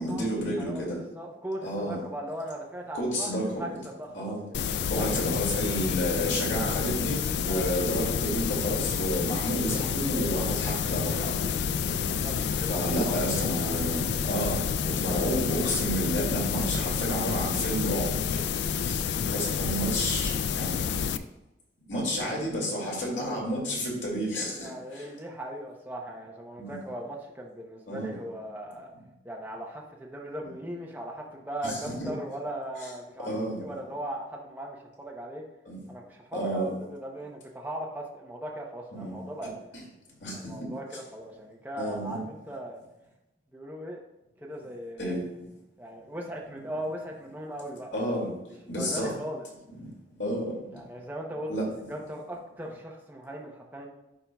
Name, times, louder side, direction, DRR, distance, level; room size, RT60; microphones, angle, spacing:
voice 1, 0.0-1.0 1.6-2.0 2.9-3.5 4.1-4.4 4.9-11.5 12.7-18.1 18.8-20.8 21.9-25.1 26.6-26.7 27.9-28.1 31.6-32.1 33.3-33.6 35.7-35.8 36.3-36.7 38.9-39.1 40.2-40.7 41.8-42.2 45.0-45.3 47.9-48.3 48.7-49.1 49.8-49.9 50.2-50.6 51.5-51.7, equal, 90° left, -3 dB, 2.3 m, -31 dB
voice 2, 0.6-4.6 7.4-7.7 11.5-12.3 12.6-13.1 24.6-28.9 29.2-35.5 35.9-39.5 40.3-42.8 43.5-44.0 44.4-45.2 45.8-47.9 48.8-49.5 50.7-51.5 51.9-53.9, right 1 dB, 10° right, -1 dB, 0.7 m, -38 dB
sound 1, 4.5-21.2, left 7 dB, 75° left, 0.3 m, -29 dB
11.0 x 4.5 x 2.3 m, 0.95 s
head